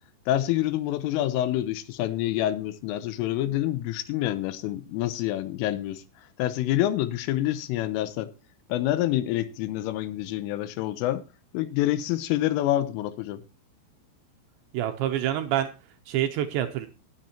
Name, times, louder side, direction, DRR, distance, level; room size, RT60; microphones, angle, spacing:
voice 1, 0.3-6.0 6.4-8.3 8.7-11.2 11.5-13.4, left 13 dB, 85° left, 3.4 m, -27 dB
voice 2, 14.7-15.7 16.1-16.9, right 12 dB, 80° right, 2.7 m, -26 dB
19.0 x 9.3 x 2.8 m
omnidirectional pair, 5.8 m